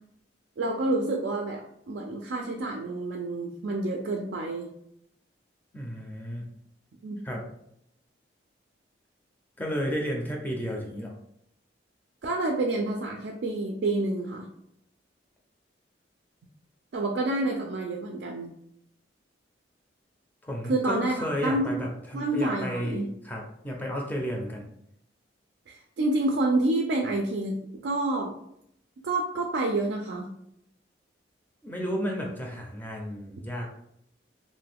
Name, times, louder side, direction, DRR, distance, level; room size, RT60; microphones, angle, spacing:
voice 1, 0.6-4.7 7.0-7.2 12.2-14.5 16.9-18.5 20.7-21.9 22.1-23.1 25.7-27.5 27.8-28.4 29.0-30.3, right 2 dB, 65° right, 1 dB, 0.4 m, -28 dB
voice 2, 5.7-6.5 7.2-7.5 9.6-11.2 20.4-24.7 31.6-33.7, equal, 10° left, -1 dB, 0.5 m, -32 dB
2.6 x 2.2 x 3.4 m, 0.74 s
head